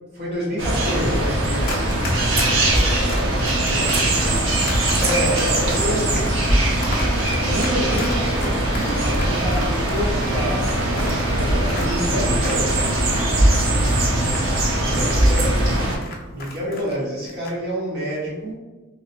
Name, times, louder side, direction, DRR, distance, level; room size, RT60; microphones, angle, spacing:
voice 1, 0.1-1.9 5.0-6.4 7.4-13.1 16.3-18.5, equal, 55° right, -6 dB, 1.3 m, -28 dB
sound 1, 0.6-16.0, right 1 dB, 70° right, 0.7 m, -20 dB
Run, 1.6-13.2 13.5-16.9 17.2-17.5, left 2 dB, 45° left, 0.6 m, -35 dB
voice 2, 2.6-4.3 7.9-8.1 14.6-15.8, equal, 20° right, -11 dB, 1.3 m, -34 dB
Wind instrument woodwind instrument, 7.8-16.2, right 1 dB, 5° left, 1.0 m, -39 dB
2.9 x 2.9 x 2.6 m, 1.2 s
head